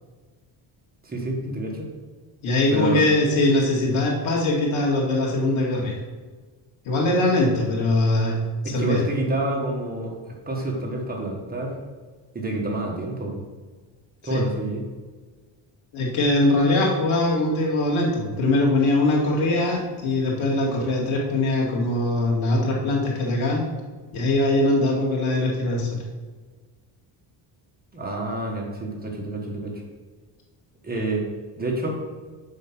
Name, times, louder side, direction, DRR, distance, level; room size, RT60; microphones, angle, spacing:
voice 1, 1.0-1.9 2.7-3.0 8.6-11.8 12.3-13.4 14.2-14.8 27.9-29.8 30.8-31.3 31.6-32.0, right 1 dB, 20° right, -1 dB, 1.5 m, -28 dB
voice 2, 2.4-6.0 6.8-8.4 8.6-9.0 14.3-14.4 15.9-23.6 24.1-26.0, left 2 dB, 85° left, -2 dB, 2.5 m, -22 dB
7.3 x 5.4 x 6.0 m, 1.4 s
cardioid pair, 160°, 46 cm